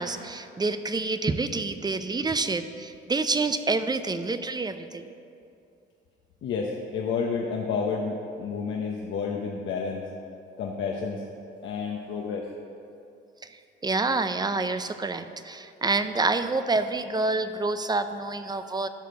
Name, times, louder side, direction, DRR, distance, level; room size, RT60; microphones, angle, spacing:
voice 1, 0.0-5.1 13.8-18.9, right 3 dB, 20° right, 10 dB, 0.5 m, -27 dB
voice 2, 6.4-10.0 10.6-11.2 11.6-12.5, left 5 dB, 70° left, -1 dB, 0.9 m, -30 dB
12.0 x 5.0 x 6.7 m, 2.6 s
cardioid pair, 90°, 20 cm